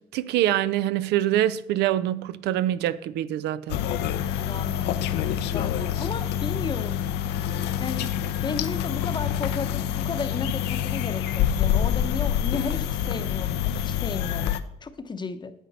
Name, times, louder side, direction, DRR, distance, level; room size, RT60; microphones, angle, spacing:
voice 1, 0.0-3.8, right 12 dB, 85° right, 0.5 m, -25 dB
sound 1, 3.7-14.6, left 10 dB, 85° left, 0.6 m, -26 dB
voice 2, 4.4-5.0 5.4-7.0 7.8-15.5, left 4 dB, 25° left, 0.8 m, -34 dB
10.0 x 7.7 x 4.0 m
cardioid pair, 110°, 17 cm